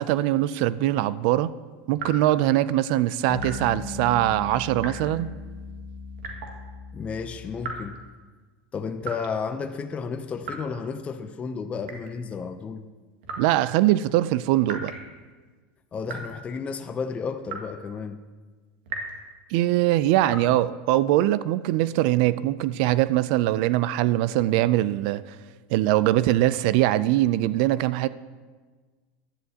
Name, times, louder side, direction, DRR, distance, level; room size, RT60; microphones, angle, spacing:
voice 1, 0.0-1.5 1.9-5.3 13.4-14.9 19.5-25.3 25.7-28.1, right 14 dB, 65° right, 0.4 m, -22 dB
sound 1, 1.9-2.4 3.4-3.7 4.8-5.2 6.2-6.6 7.6-8.0 9.0-9.3 10.4-10.8 11.8-12.2 13.2-13.5 14.6-15.1 16.0-16.3 17.4-17.8 18.9-19.2 20.3-20.5, right 4 dB, 80° right, 1.9 m, -36 dB
sound 2, 3.3-8.1, left 4 dB, 80° left, 0.9 m, -38 dB
voice 2, 6.9-8.0 8.7-12.9 15.9-18.2, left 5 dB, 25° left, 0.5 m, -32 dB
15.5 x 11.5 x 2.8 m
supercardioid pair, 125°, 5 cm